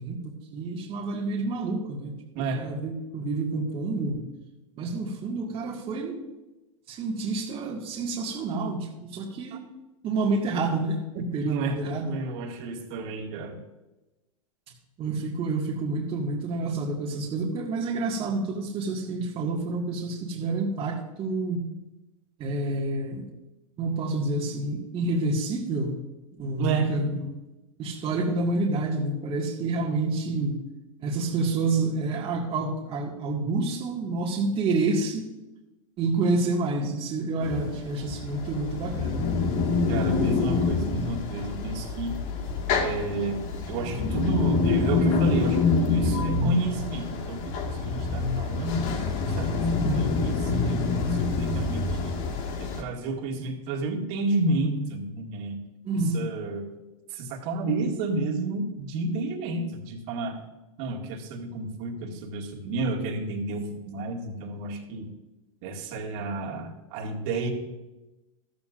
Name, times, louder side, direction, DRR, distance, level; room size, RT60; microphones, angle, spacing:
voice 1, 0.0-4.3 4.7-6.2 6.9-9.7 10.0-12.1 15.0-21.6 22.4-23.3 23.8-26.0 26.3-27.4 27.8-30.6 31.0-35.3 36.0-39.3 49.8-50.2 55.9-56.2, right 3 dB, 30° right, -3 dB, 1.9 m, -28 dB
voice 2, 2.4-2.7 11.1-13.6 26.6-27.3 39.9-42.2 42.8-43.4 43.7-49.0 49.3-52.2 52.6-55.6 56.1-56.7 57.1-60.4 60.8-65.1 65.6-67.5, right 2 dB, 55° right, 0 dB, 2.2 m, -31 dB
sound 1, 37.4-52.8, left 4 dB, 45° left, 1.9 m, -26 dB
13.5 x 13.5 x 2.6 m, 1.0 s
hypercardioid pair, 120°, 17 cm